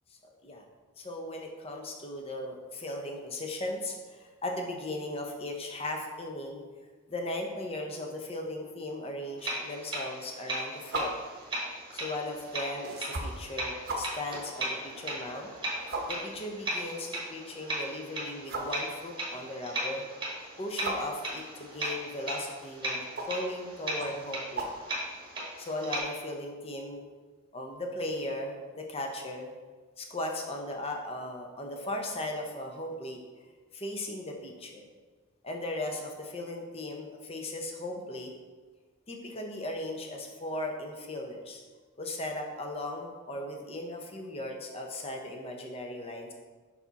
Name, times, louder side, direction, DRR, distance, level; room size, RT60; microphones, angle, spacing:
voice 1, 1.0-6.6 7.1-11.2 11.9-15.5 16.1-20.0 20.6-24.7 25.6-27.0 27.5-29.5 30.0-33.2 33.7-34.9 35.4-38.3 39.1-41.6 42.0-46.3, left 1 dB, 25° left, 2 dB, 0.6 m, -37 dB
sound 1, 9.4-26.0, right 1 dB, 20° right, 1.2 m, -37 dB
sound 2, 10.8-25.5, right 2 dB, 45° right, 0.8 m, -41 dB
5.6 x 4.9 x 4.0 m, 1.4 s
head